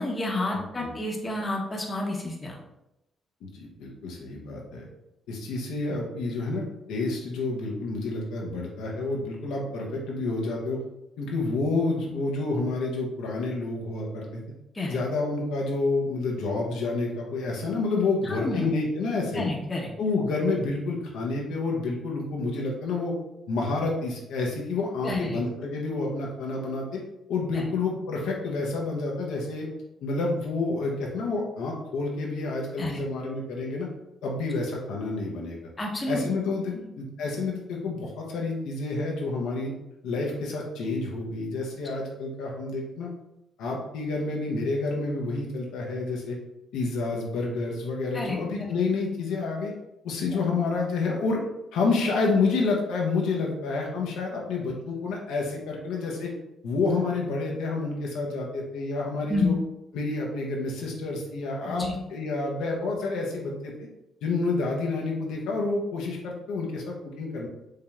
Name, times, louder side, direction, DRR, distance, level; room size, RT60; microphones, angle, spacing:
voice 1, 0.0-2.6 14.7-15.0 18.3-18.7 19.3-19.9 25.0-25.4 27.5-27.6 32.8-33.0 35.8-36.2 36.7-36.9 48.1-48.4 59.3-59.6 61.7-61.9, left 2 dB, 25° left, 0 dB, 0.8 m, -29 dB
voice 2, 0.5-0.9 3.4-4.8 5.3-10.8 11.2-14.3 14.9-19.4 20.0-23.1 23.5-27.0 27.3-29.7 30.0-33.9 34.2-35.6 36.1-39.7 40.0-43.1 43.6-46.4 46.7-49.7 50.0-51.4 51.7-56.3 56.6-59.6 59.9-63.7 64.2-67.5, left 3 dB, 90° left, -1 dB, 0.8 m, -29 dB
4.8 x 2.8 x 2.4 m, 0.89 s
cardioid pair, 90°, 0 cm